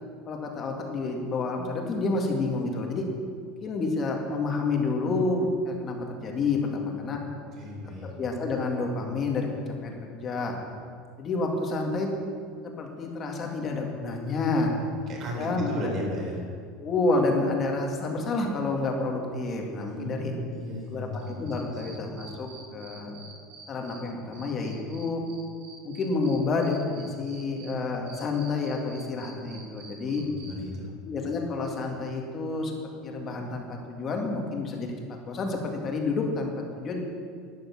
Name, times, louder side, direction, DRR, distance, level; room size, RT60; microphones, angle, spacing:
voice 1, 0.2-3.1 3.6-7.2 8.0-10.6 11.2-12.1 12.6-14.7 15.4-15.9 16.8-20.3 20.9-23.2 23.7-25.2 25.8-30.2 31.0-32.7 33.0-34.9 35.2-37.0, left 3 dB, 25° left, 1 dB, 2.1 m, -29 dB
voice 2, 7.6-8.1 14.7-16.4 19.9-21.9 30.1-30.9, left 1 dB, 35° right, 0 dB, 3.9 m, -35 dB
Cricket, 21.2-24.0 24.3-27.7 28.1-30.5, right 5 dB, 75° right, 4.7 m, -48 dB
12.0 x 11.0 x 7.2 m, 2.1 s
supercardioid pair, 165°, 0 cm